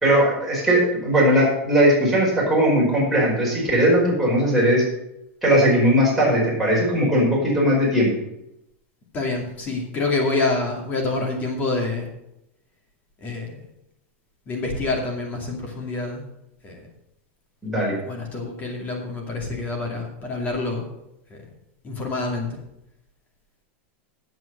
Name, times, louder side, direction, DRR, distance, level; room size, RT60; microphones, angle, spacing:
voice 1, 0.0-4.8 5.4-8.1 17.6-18.0, equal, ahead, -7 dB, 5.0 m, -19 dB
voice 2, 9.1-12.1 13.2-13.6 14.5-16.2 16.6-16.9 18.1-20.9 21.3-21.4 21.8-22.6, left 3 dB, 25° left, 1 dB, 2.4 m, -27 dB
9.2 x 7.9 x 6.6 m, 0.84 s
supercardioid pair, 160°, 7 cm